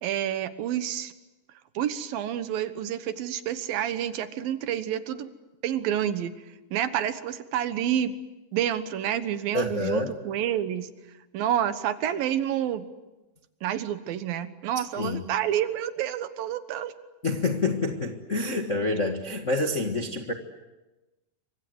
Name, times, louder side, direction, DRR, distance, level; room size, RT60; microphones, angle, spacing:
voice 1, 0.0-1.1 1.7-5.3 5.6-6.3 6.7-8.1 8.5-10.9 11.3-12.9 13.6-16.9, right 10 dB, 75° right, 11 dB, 3.0 m, -28 dB
voice 2, 9.5-10.1 15.0-15.2 17.2-20.3, left 2 dB, 45° left, 3 dB, 1.0 m, -27 dB
28.0 x 25.0 x 8.0 m, 1.1 s
omnidirectional pair, 4.2 m